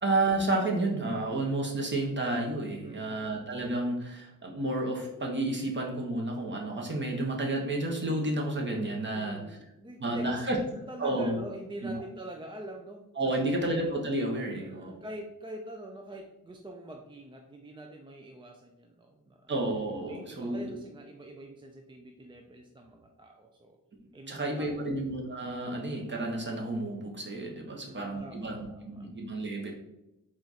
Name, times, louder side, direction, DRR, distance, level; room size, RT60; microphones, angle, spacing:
voice 1, 0.0-9.4 10.0-10.6 11.0-11.4 11.8-11.9 13.2-15.0 19.5-20.6 24.3-29.7, right 2 dB, 35° right, 0 dB, 1.0 m, -31 dB
voice 2, 2.8-3.3 9.1-13.7 14.5-19.5 20.1-23.8 24.1-25.0 27.7-29.1, right 1 dB, 15° right, 2 dB, 0.4 m, -45 dB
4.3 x 2.5 x 4.1 m, 0.93 s
wide cardioid pair, 90°, 33 cm